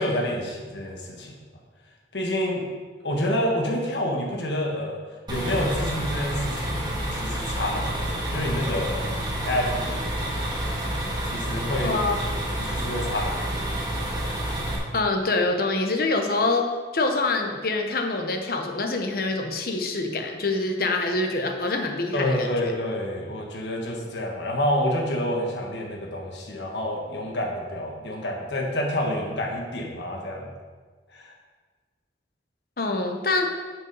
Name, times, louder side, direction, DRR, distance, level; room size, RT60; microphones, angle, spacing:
voice 1, 0.0-1.3 2.1-2.6 3.0-5.0 5.3-8.9 9.4-10.3 11.2-11.9 12.6-13.6 22.1-30.5 31.1-31.3, left 1 dB, 80° left, 0 dB, 1.5 m, -28 dB
sound 1, 5.3-14.8, right 1 dB, 25° right, 1.6 m, -29 dB
voice 2, 11.8-12.2 14.9-16.7 16.9-22.7 32.8-33.4, left 3 dB, 55° left, 4 dB, 1.0 m, -25 dB
8.1 x 5.3 x 5.4 m, 1.4 s
head